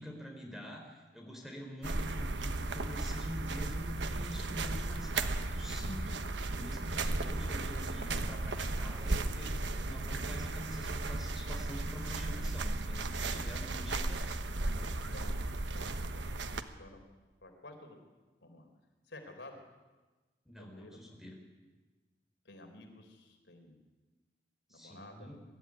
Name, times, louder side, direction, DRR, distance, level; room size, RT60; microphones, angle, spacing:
voice 1, 0.0-14.2 14.5-14.9 20.4-21.3 24.7-25.4, equal, ahead, 1 dB, 4.1 m, -46 dB
sound 1, 1.8-16.6, right 2 dB, 85° right, 1.2 m, -35 dB
voice 2, 15.7-16.3 16.6-17.0 17.4-18.0 18.4-18.7 19.1-19.6 20.6-21.0 22.4-23.8 24.7-25.3, left 2 dB, 85° left, 4 dB, 4.1 m, -52 dB
23.0 x 13.5 x 9.7 m, 1.3 s
head